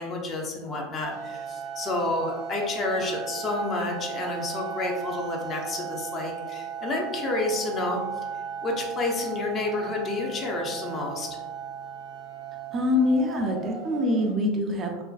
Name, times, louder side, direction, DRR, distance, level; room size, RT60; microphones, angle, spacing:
voice 1, 0.0-8.0 8.6-11.3, left 2 dB, 35° left, 0 dB, 0.5 m, -30 dB
sound 1, 1.0-14.3, right 7 dB, 50° right, 0.9 m, -36 dB
voice 2, 12.7-15.0, left 2 dB, 35° right, 3 dB, 0.4 m, -24 dB
2.5 x 2.1 x 2.3 m, 1.2 s
hypercardioid pair, 85°, 0 cm